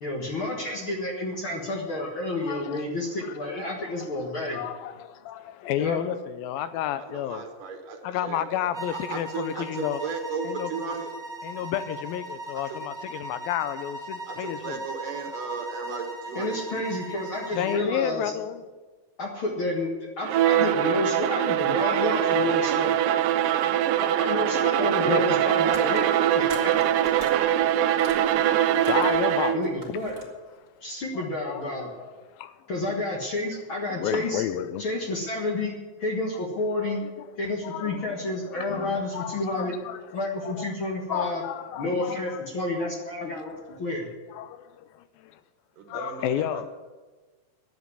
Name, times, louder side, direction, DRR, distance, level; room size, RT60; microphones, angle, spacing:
voice 1, 0.0-4.6 5.8-6.0 16.4-18.3 19.2-19.9 20.2-23.0 24.2-26.1 26.3-26.7 29.5-30.1 30.8-31.9 32.7-34.4 34.8-37.0 37.4-39.7 40.1-41.4 41.8-44.1, left 2 dB, 50° left, 1.7 m, -30 dB
voice 2, 2.3-2.9 3.2-4.1 4.5-7.5 8.0-10.0 10.4-10.7 11.4-14.8 17.5-18.6 23.4-23.5 24.5-25.2 28.0-28.5 28.8-29.7 30.6-30.7 31.2-32.6 33.9-34.9 37.0-37.3 37.6-38.2 38.5-40.7 41.1-42.4 42.8-42.9 43.2-43.7 44.3-45.4 45.9-46.7, left 11 dB, 80° left, 2.4 m, -32 dB
voice 3, 7.0-8.4 9.1-11.1 14.3-16.8 45.8-46.6, right 5 dB, 65° right, 2.7 m, -35 dB
sound 1, 8.7-17.9, right 1 dB, 5° right, 0.5 m, -39 dB
Bowed string instrument, 20.2-29.7, right 11 dB, 85° right, 1.8 m, -23 dB
sound 2, 25.7-29.3 29.6-30.2, right 2 dB, 20° right, 1.3 m, -44 dB
10.5 x 7.9 x 9.8 m
omnidirectional pair, 4.2 m